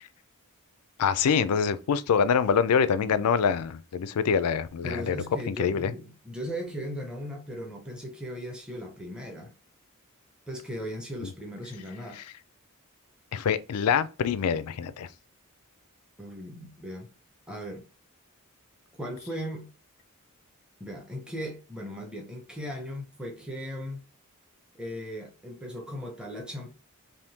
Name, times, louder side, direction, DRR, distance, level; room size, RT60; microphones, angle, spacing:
voice 1, 1.0-5.2 5.5-5.9 11.2-11.3 13.3-15.1, left 6 dB, 90° left, 0.4 m, -25 dB
voice 2, 4.8-9.5 10.5-12.2 16.2-17.1 17.5-17.9 19.0-19.7 20.8-24.0 24.7-26.7, equal, 5° right, 0.6 m, -37 dB
3.5 x 2.6 x 2.7 m
head